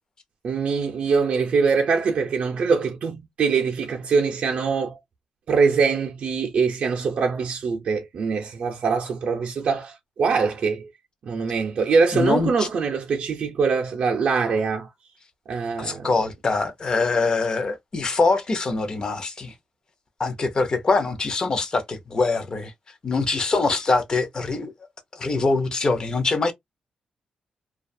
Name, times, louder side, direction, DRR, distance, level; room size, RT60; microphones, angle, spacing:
voice 1, 0.4-5.0 5.5-10.9 11.3-14.9 15.5-16.1, right 5 dB, 55° right, 0.5 m, -23 dB
voice 2, 12.1-12.7 15.8-19.5 20.2-22.7 23.0-24.7 25.1-26.5, left 3 dB, 35° left, 0.6 m, -23 dB
2.4 x 2.2 x 2.6 m
wide cardioid pair, 150°, 2 cm